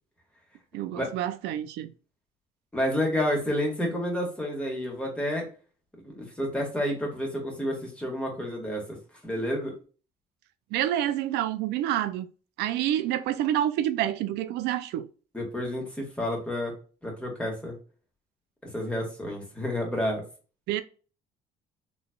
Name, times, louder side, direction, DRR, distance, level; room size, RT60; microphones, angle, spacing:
voice 1, 0.7-1.9 10.7-12.3 12.6-15.1 20.7-20.8, right 12 dB, 85° right, 0.4 m, -28 dB
voice 2, 2.7-5.5 6.0-8.8 9.2-9.7 15.3-16.7 17.0-17.8 18.7-20.2, left 1 dB, 5° left, 1.7 m, -30 dB
3.8 x 3.2 x 2.3 m
cardioid pair, 110°, 17 cm